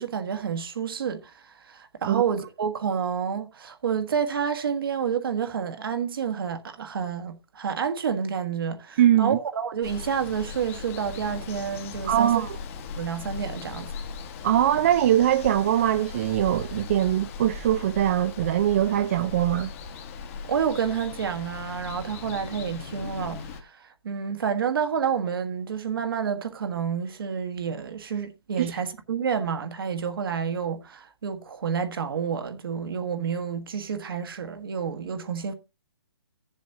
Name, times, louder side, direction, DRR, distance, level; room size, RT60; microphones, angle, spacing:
voice 1, 0.0-12.5 13.0-13.9 20.5-35.5, right 7 dB, 60° right, 1.5 m, -29 dB
voice 2, 9.0-9.4 12.0-12.6 14.4-19.7 28.6-28.7, right 11 dB, 35° right, 0.4 m, -22 dB
Water, 9.8-23.6, left 5 dB, 35° left, 1.2 m, -38 dB
15.0 x 7.2 x 2.8 m
hypercardioid pair, 155°, 13 cm